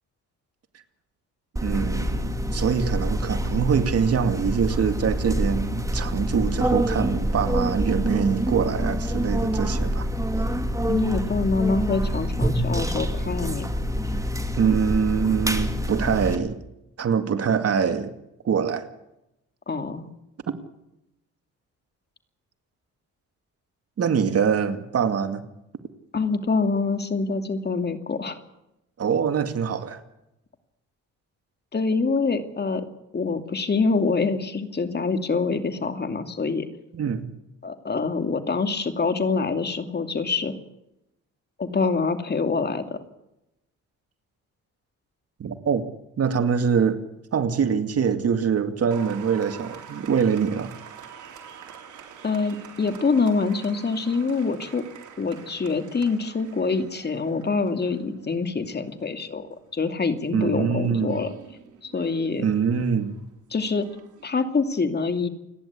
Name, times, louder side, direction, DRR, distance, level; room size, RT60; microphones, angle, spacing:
sound 1, 1.6-16.4, equal, 10° right, 2.5 m, -26 dB
voice 1, 1.6-10.1 14.6-16.6 17.0-18.1 18.4-18.9 20.5-20.6 24.0-25.4 29.0-30.0 36.9-37.3 45.4-45.8 46.2-47.0 47.3-50.7 60.3-61.2 62.4-63.1, right 6 dB, 55° right, 2.3 m, -24 dB
voice 2, 10.9-13.7 19.7-20.1 26.1-28.4 31.7-32.8 33.1-36.7 37.6-40.5 41.6-43.0 52.2-54.8 55.2-59.5 59.7-61.3 61.8-62.4 63.5-63.9 64.2-65.3, left 4 dB, 35° left, 2.6 m, -25 dB
Applause, 48.9-64.2, right 8 dB, 75° right, 4.1 m, -46 dB
28.5 x 11.0 x 8.4 m
cardioid pair, 90°, 30 cm